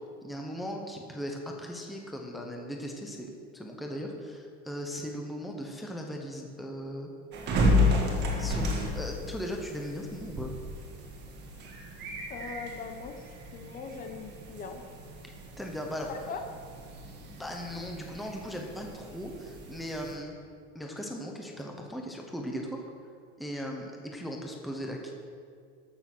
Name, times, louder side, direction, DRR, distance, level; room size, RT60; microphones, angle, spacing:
voice 1, 0.2-7.1 8.4-10.6 15.2-16.1 17.2-20.4 20.7-22.8 23.4-25.1, equal, ahead, 1 dB, 0.8 m, -38 dB
sound 1, 7.3-20.2, left 1 dB, 35° right, 1.7 m, -32 dB
voice 2, 12.3-14.8 16.1-16.4, left 5 dB, 25° left, 5 dB, 0.8 m, -41 dB
13.5 x 6.8 x 6.0 m, 2.2 s
cardioid pair, 170°, 31 cm